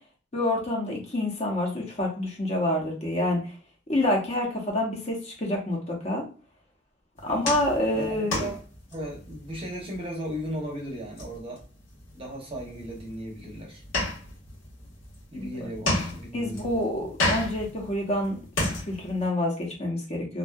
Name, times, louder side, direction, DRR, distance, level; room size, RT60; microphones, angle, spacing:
voice 1, 0.3-3.4 3.9-6.2 7.2-8.4 15.4-15.5 16.3-18.4 18.9-20.4, left 1 dB, 35° left, 0 dB, 0.6 m, -27 dB
sound 1, 7.2-19.3, left 2 dB, 85° left, 1.1 m, -33 dB
voice 2, 7.9-8.6 8.9-11.6 12.1-13.8 15.3-16.6, equal, 30° right, -1 dB, 0.6 m, -36 dB
2.5 x 2.2 x 2.2 m, 0.37 s
head